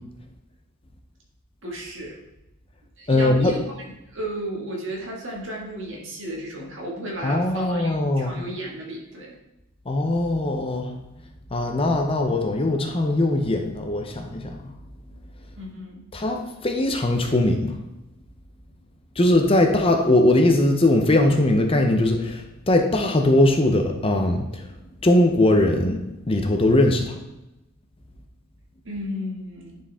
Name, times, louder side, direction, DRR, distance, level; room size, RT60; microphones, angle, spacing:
voice 1, 1.6-2.2 3.0-3.7 4.1-9.4 15.6-16.1 28.8-29.8, equal, 60° right, -2 dB, 1.7 m, -33 dB
voice 2, 3.1-3.5 7.2-8.4 9.9-10.9 11.5-14.7 16.1-17.8 19.2-24.6 25.0-26.0 26.3-27.2, left 1 dB, 25° left, 4 dB, 0.6 m, -20 dB
10.0 x 4.5 x 3.5 m, 0.92 s
head